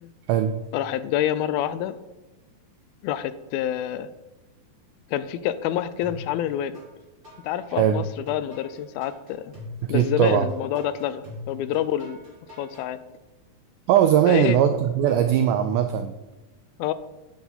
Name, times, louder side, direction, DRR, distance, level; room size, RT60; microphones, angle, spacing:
voice 1, 0.7-2.0 3.0-4.1 5.1-6.7 7.4-9.6 9.9-12.2 12.6-13.0 14.3-14.6 16.8-16.9, left 11 dB, 85° left, 14 dB, 2.4 m, -27 dB
sound 1, 6.0-6.9 7.2-12.9, left 2 dB, 20° right, 3.5 m, -41 dB
voice 2, 7.7-8.0 9.8-10.5 13.9-16.2, right 10 dB, 90° right, 8 dB, 1.8 m, -20 dB
9.5 x 8.4 x 4.1 m, 1.1 s
omnidirectional pair, 4.2 m